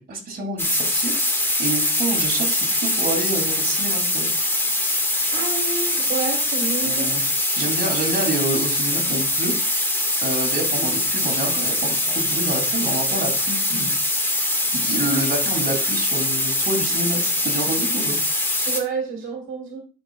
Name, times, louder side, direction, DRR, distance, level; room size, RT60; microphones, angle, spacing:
voice 1, 0.0-4.3 6.8-7.2 7.6-9.5 10.2-14.0 14.7-18.2, right 2 dB, 50° right, 2 dB, 2.7 m, -28 dB
sound 1, 0.6-18.8, left 1 dB, 10° left, 1.6 m, -23 dB
voice 2, 5.3-7.1 18.6-19.8, right 5 dB, 90° right, 2 dB, 1.5 m, -29 dB
10.5 x 5.1 x 2.3 m, 0.34 s
cardioid pair, 90°, 20 cm